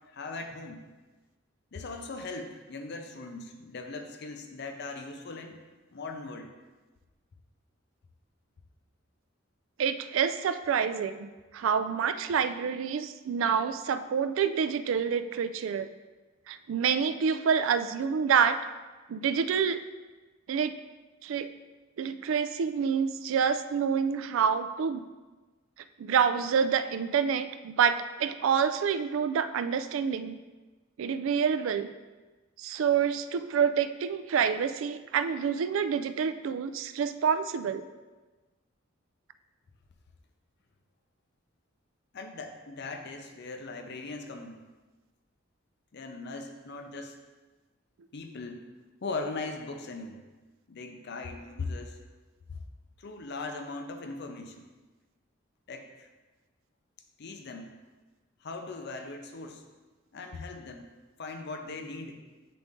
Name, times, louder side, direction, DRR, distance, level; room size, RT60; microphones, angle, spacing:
voice 1, 0.1-0.8 1.7-5.6 5.9-6.6 42.1-44.6 45.9-47.2 48.1-48.7 49.0-50.2 50.7-52.0 52.5-52.6 53.0-54.7 55.7-56.1 57.2-57.7 58.4-59.6 60.1-60.9 61.2-62.2, left 3 dB, 55° left, 5 dB, 0.5 m, -39 dB
voice 2, 9.8-11.3 11.5-15.9 16.5-18.6 19.1-19.8 20.5-20.7 21.2-21.5 22.0-25.0 26.0-30.4 31.0-31.9 32.6-37.9, right 7 dB, 75° right, 11 dB, 0.3 m, -27 dB
7.7 x 3.8 x 3.6 m, 1.2 s
head